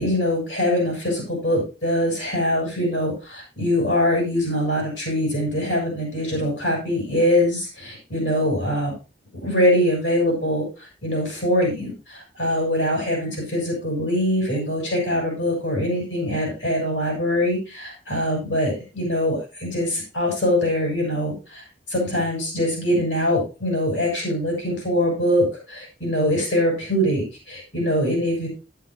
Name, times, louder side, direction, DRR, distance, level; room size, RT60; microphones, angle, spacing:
voice 1, 0.0-8.9 9.4-28.5, left 1 dB, 80° left, -1 dB, 6.6 m, -23 dB
11.5 x 11.5 x 2.6 m, 0.31 s
head